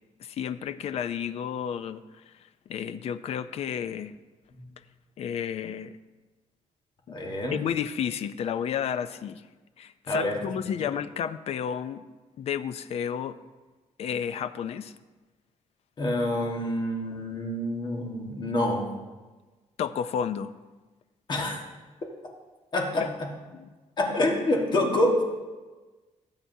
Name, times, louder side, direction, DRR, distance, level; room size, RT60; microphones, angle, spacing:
voice 1, 0.2-2.0 2.7-4.1 5.2-6.0 7.1-7.2 7.5-9.4 9.8-12.0 12.4-13.4 14.0-14.9 19.8-20.5 23.0-23.1 23.5-23.7, left 8 dB, 60° left, 13 dB, 0.5 m, -31 dB
voice 2, 7.1-7.6 10.1-10.4 16.0-18.9 21.3-21.6 22.7-23.3 24.0-25.1, left 1 dB, 40° left, 0 dB, 1.5 m, -27 dB
18.0 x 7.2 x 2.7 m, 1.3 s
wide cardioid pair, 170°, 12 cm